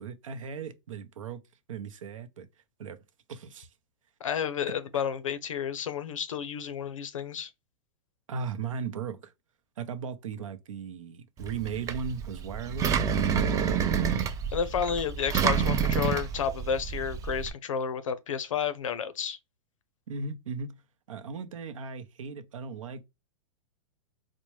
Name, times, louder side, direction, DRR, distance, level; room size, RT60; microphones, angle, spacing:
voice 1, 0.0-1.4 1.7-2.5 2.8-3.0 3.3-3.7 4.9-5.1 8.3-9.3 9.8-13.0 13.3-13.7 20.1-20.8 21.1-23.0, right 5 dB, 85° right, 0.7 m, -37 dB
voice 2, 4.2-7.5 14.1-19.4, left 7 dB, 90° left, 0.6 m, -31 dB
Engine, 11.4-17.5, right 7 dB, 20° right, 0.4 m, -28 dB
4.3 x 2.1 x 3.0 m
hypercardioid pair, 125°, 16 cm